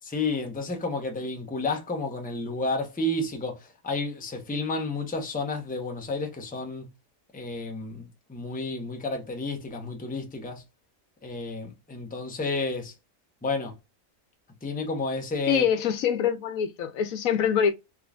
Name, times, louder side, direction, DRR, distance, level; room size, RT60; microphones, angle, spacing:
voice 1, 0.1-6.9 7.3-10.6 11.2-12.9 13.4-13.7 14.6-15.6, left 2 dB, 10° left, 0.6 m, -31 dB
voice 2, 15.5-17.7, left 8 dB, 80° left, 1.1 m, -24 dB
3.6 x 3.0 x 2.4 m
omnidirectional pair, 1.4 m